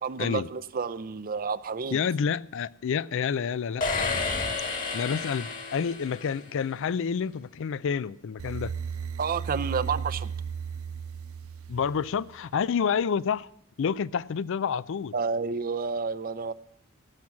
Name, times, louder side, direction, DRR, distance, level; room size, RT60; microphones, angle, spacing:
voice 1, 0.0-2.0 4.0-4.2 9.2-10.3 15.1-16.5, right 5 dB, 45° right, 14 dB, 0.6 m, -30 dB
voice 2, 1.9-4.2 4.9-8.7 11.7-13.5 13.8-15.1, left 6 dB, 65° left, 20 dB, 0.4 m, -29 dB
sound 1, 3.8-6.6, left 4 dB, 40° left, 1.8 m, -31 dB
sound 2, 8.4-12.5, right 6 dB, 90° right, 0.6 m, -35 dB
17.0 x 6.0 x 8.3 m, 0.71 s
head